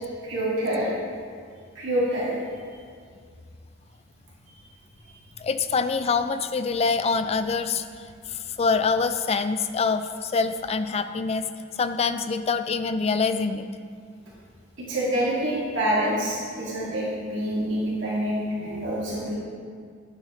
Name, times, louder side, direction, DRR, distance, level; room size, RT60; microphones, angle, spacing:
voice 1, 0.2-0.9 1.7-2.4 14.9-19.4, right 1 dB, 65° right, -8 dB, 2.5 m, -26 dB
voice 2, 5.4-7.9 8.3-11.5 11.8-13.7, left 4 dB, 30° left, 10 dB, 0.4 m, -25 dB
10.0 x 8.7 x 3.3 m, 2.1 s
head